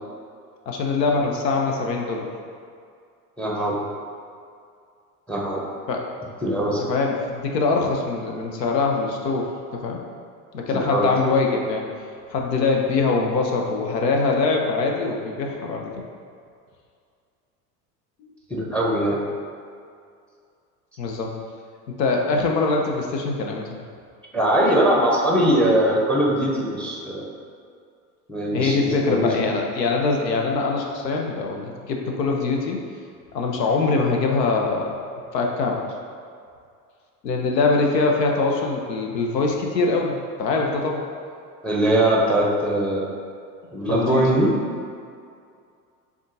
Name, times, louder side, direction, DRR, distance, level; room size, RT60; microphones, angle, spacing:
voice 1, 0.7-2.3 5.9-6.0 6.9-10.0 10.5-11.8 12.3-15.9 18.2-18.3 21.0-21.4 22.0-23.7 28.5-32.8 33.3-34.9 35.3-35.8 37.2-41.0 43.9-44.2, left 3 dB, 80° left, 1 dB, 0.8 m, -23 dB
voice 2, 3.4-3.7 5.3-5.6 6.4-6.8 10.7-11.1 18.5-19.2 24.3-27.3 28.3-29.5 41.6-43.1 43.7-44.5, right 1 dB, ahead, -3 dB, 0.6 m, -21 dB
7.1 x 2.4 x 2.7 m, 2.3 s
hypercardioid pair, 85°, 48 cm